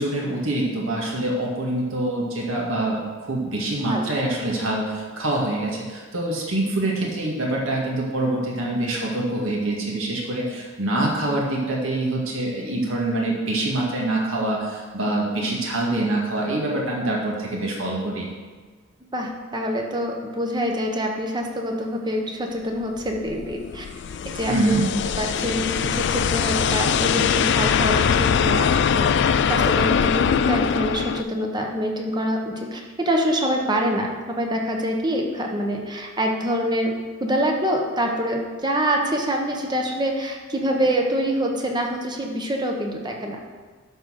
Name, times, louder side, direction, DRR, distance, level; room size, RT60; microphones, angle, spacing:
voice 1, 0.0-18.3 24.5-24.9, right 1 dB, 70° right, -2 dB, 1.9 m, -25 dB
voice 2, 19.0-23.8 24.2-24.8 25.2-43.4, equal, 20° right, 1 dB, 1.0 m, -25 dB
sound 1, 23.0-31.2, left 7 dB, 55° left, 0.3 m, -22 dB
11.5 x 4.0 x 6.4 m, 1.5 s
head